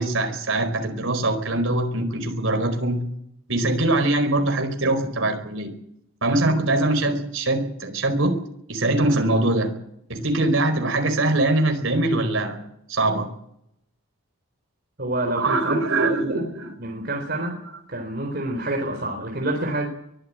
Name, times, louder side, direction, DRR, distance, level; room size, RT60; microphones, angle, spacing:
voice 1, 0.0-3.1 3.5-5.7 6.2-8.4 8.7-9.7 10.1-12.6 12.9-13.3 15.2-16.7, right 2 dB, 70° right, 6 dB, 4.7 m, -22 dB
voice 2, 15.0-16.4 16.8-17.6 17.9-19.9, right 1 dB, 50° right, 1 dB, 4.1 m, -28 dB
23.0 x 14.5 x 8.8 m, 0.73 s
head